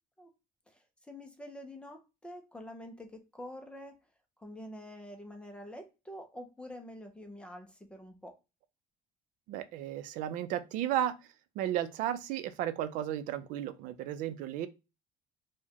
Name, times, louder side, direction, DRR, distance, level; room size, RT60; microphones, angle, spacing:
voice 1, 0.7-4.0 4.4-8.4, left 1 dB, 10° left, 0.4 m, -47 dB
voice 2, 9.5-11.2 11.6-14.7, right 11 dB, 85° right, 0.5 m, -34 dB
4.6 x 2.1 x 2.8 m
cardioid pair, 180°, 13 cm